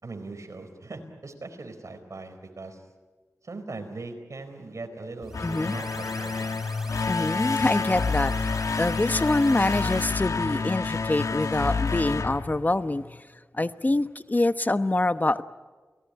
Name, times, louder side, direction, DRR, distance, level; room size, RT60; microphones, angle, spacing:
voice 1, 0.0-2.8 3.4-6.5, right 3 dB, 70° right, 5 dB, 4.4 m, -40 dB
sound 1, 5.2-13.2, left 4 dB, 85° left, 1.2 m, -28 dB
sound 2, 5.2-10.3, equal, 5° right, 3.3 m, -44 dB
voice 2, 5.4-5.8 7.1-8.3 8.8-13.0 13.5-15.4, left 2 dB, 30° left, 12 dB, 1.0 m, -25 dB
29.5 x 18.0 x 9.8 m, 1.4 s
wide cardioid pair, 70°, 6 cm